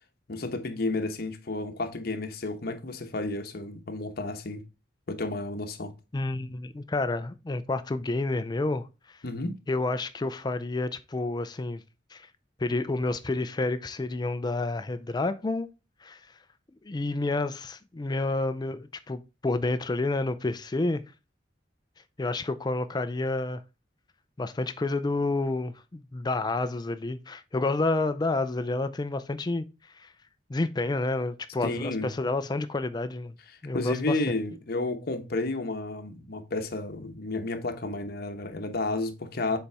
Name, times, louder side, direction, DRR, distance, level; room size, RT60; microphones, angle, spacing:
voice 1, 0.3-4.6 5.1-5.9 9.2-9.6 31.6-32.1 33.7-39.6, left 2 dB, 55° left, 1.0 m, -31 dB
voice 2, 6.1-9.2 9.7-11.8 12.1-12.3 12.6-15.7 16.0-16.2 16.8-21.0 22.2-23.6 24.4-29.7 29.9-30.1 30.5-33.4 33.6-34.2, left 2 dB, 20° left, 0.4 m, -29 dB
6.9 x 4.1 x 3.4 m
head